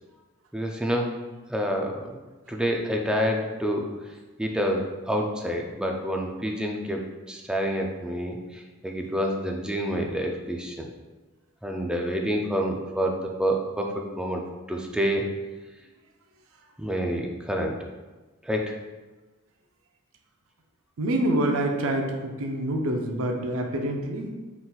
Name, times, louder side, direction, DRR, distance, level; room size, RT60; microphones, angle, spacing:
voice 1, 0.5-1.1 1.5-2.2 2.5-3.9 4.4-10.9 11.6-14.4 14.7-15.3 16.8-17.8 18.4-18.7, equal, 5° right, 1 dB, 0.3 m, -28 dB
voice 2, 21.0-24.3, right 1 dB, 65° right, 3 dB, 0.5 m, -26 dB
4.1 x 3.8 x 2.3 m, 1.2 s
head